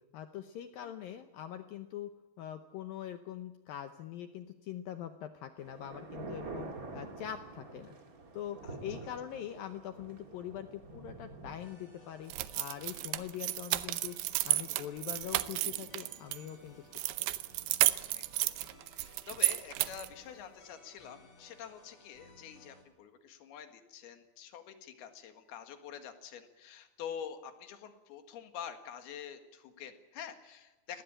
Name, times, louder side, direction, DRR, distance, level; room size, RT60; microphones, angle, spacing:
voice 1, 0.1-2.1 2.4-6.7 6.9-7.9 8.3-14.2 14.4-16.8 17.2-17.3, left 10 dB, 80° left, 8 dB, 2.1 m, -43 dB
sound 1, 5.6-19.2 19.5-19.6 19.7-20.2 20.8-20.9 21.8-21.9, right 3 dB, 35° right, 1.3 m, -49 dB
voice 2, 8.6-9.1 12.9-13.3 17.9-31.0, left 8 dB, 65° left, 7 dB, 3.4 m, -47 dB
sound 2, 11.6-22.8, left 2 dB, 30° left, 5.1 m, -60 dB
sound 3, 12.3-16.4 16.9-20.1, right 17 dB, 75° right, 2.7 m, -32 dB
20.5 x 18.5 x 8.9 m, 1.1 s
omnidirectional pair, 5.3 m